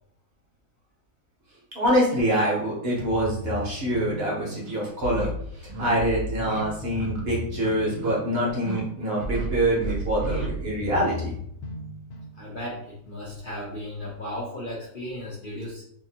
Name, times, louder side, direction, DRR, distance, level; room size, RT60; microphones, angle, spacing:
voice 1, 1.7-5.3 5.8-11.3, right 1 dB, 50° right, -4 dB, 0.9 m, -25 dB
sound 1, 3.0-12.8, equal, 90° left, 1.1 m, -35 dB
sound 2, 4.0-4.1 4.6-4.8 5.1-5.3 5.7-5.9 6.4-6.6 6.9-7.2 7.5-8.1 8.5-8.8 9.1-9.5 9.8-10.5, right 2 dB, 70° right, 1.1 m, -36 dB
voice 2, 12.3-15.8, left 1 dB, 55° left, -6 dB, 0.6 m, -35 dB
2.8 x 2.5 x 2.7 m, 0.69 s
omnidirectional pair, 1.5 m